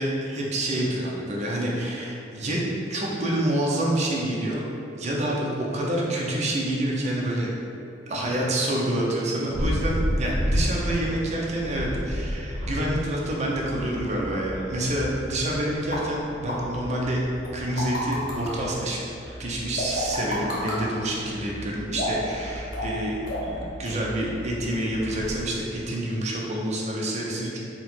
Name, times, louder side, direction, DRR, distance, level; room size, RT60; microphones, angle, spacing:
voice 1, 0.0-2.6 2.9-4.6 5.0-7.5 8.1-17.2 17.5-19.0 19.4-27.6, right 1 dB, 40° right, -3 dB, 0.6 m, -27 dB
sound 1, 9.5-25.5, equal, 65° right, 1.1 m, -33 dB
sound 2, 15.9-16.0 16.5-16.6 17.4-18.5 19.8-20.8 21.9-22.3 22.7-23.0 23.3-23.6 23.9-24.0, left 1 dB, 55° left, 1.0 m, -30 dB
4.3 x 2.1 x 4.2 m, 2.7 s
head